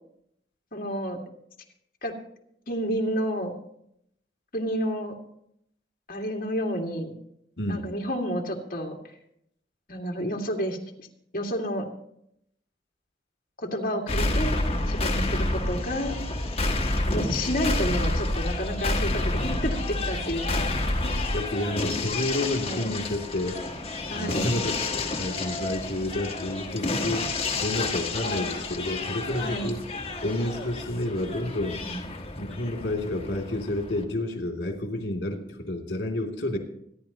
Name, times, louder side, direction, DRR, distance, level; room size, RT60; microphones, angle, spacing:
voice 1, 0.7-1.2 2.0-2.1 2.7-3.5 4.5-5.1 6.1-7.1 7.7-9.0 9.9-10.8 11.3-11.9 13.6-14.6 14.9-16.1 17.1-21.1 22.6-22.9 24.1-24.5 29.4-29.7 31.8-32.0, equal, 50° left, 0 dB, 2.2 m, -30 dB
sound 1, 14.1-34.0, left 2 dB, 35° left, 1.5 m, -29 dB
voice 2, 21.3-23.6 24.1-27.3 27.6-29.8 30.2-31.8 32.4-36.6, left 1 dB, 70° left, 2 dB, 2.8 m, -30 dB
25.0 x 10.5 x 3.0 m, 0.73 s
head